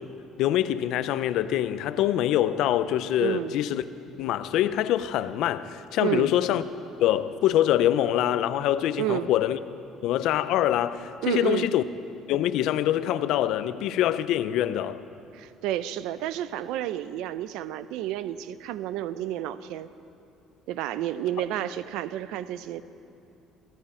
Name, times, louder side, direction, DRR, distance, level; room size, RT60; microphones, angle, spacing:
voice 1, 0.4-3.8 4.2-6.6 7.0-9.6 10.0-11.8 12.3-15.0, left 12 dB, 75° left, 0.5 m, -24 dB
voice 2, 3.2-3.6 6.0-6.3 9.0-9.3 11.2-11.7 15.3-19.9 20.7-22.8, right 13 dB, 80° right, 0.5 m, -30 dB
18.5 x 15.0 x 4.4 m
cardioid pair, 105°, 0 cm